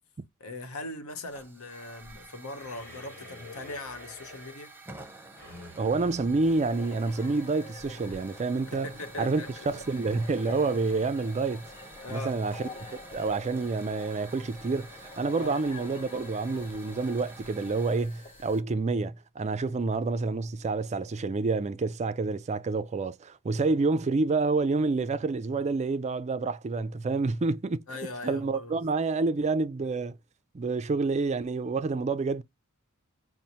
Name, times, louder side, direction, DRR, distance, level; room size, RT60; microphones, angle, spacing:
voice 1, 0.4-4.7 8.7-9.5 12.0-12.4 15.4-15.6 27.9-28.8, left 2 dB, 70° left, 1.0 m, -40 dB
Hiss / Fire, 1.3-18.6, right 2 dB, 10° right, 0.9 m, -50 dB
sound 1, 2.5-7.3, left 2 dB, 45° left, 1.8 m, -50 dB
voice 2, 5.8-8.9 9.2-11.6 12.1-12.6 13.1-27.8 28.2-30.2 30.5-32.4, right 3 dB, 30° right, 0.4 m, -28 dB
sound 2, 6.4-18.6, left 3 dB, 25° left, 0.7 m, -48 dB
5.3 x 2.1 x 2.9 m
head